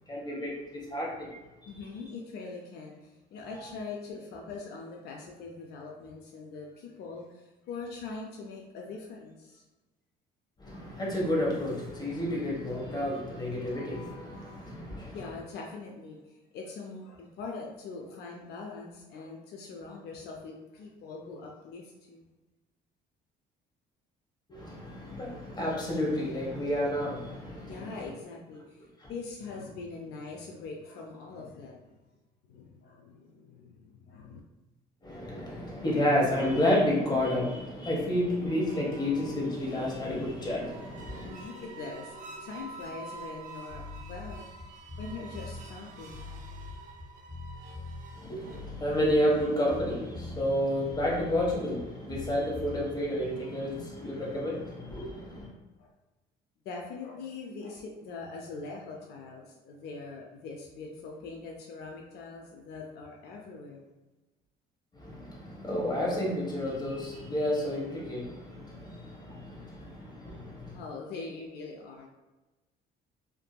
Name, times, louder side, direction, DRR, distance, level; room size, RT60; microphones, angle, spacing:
voice 1, 0.1-1.4 3.4-3.5 10.6-15.2 24.5-28.0 29.0-29.1 35.0-41.3 48.2-55.5 64.9-70.8, left 1 dB, 25° left, -4 dB, 0.9 m, -30 dB
voice 2, 1.7-9.6 15.1-22.3 27.7-31.9 32.5-34.4 41.2-43.8 44.1-44.5 45.0-46.4 46.8-46.9 55.8-55.9 56.7-63.8 70.7-72.1, left 4 dB, 75° left, 0 dB, 0.4 m, -42 dB
sound 1, 40.5-49.9, right 3 dB, 45° right, 0.5 m, -48 dB
sound 2, 43.7-53.3, left 3 dB, 10° right, 0.7 m, -43 dB
2.6 x 2.6 x 2.2 m, 1.1 s
cardioid pair, 110°, 17 cm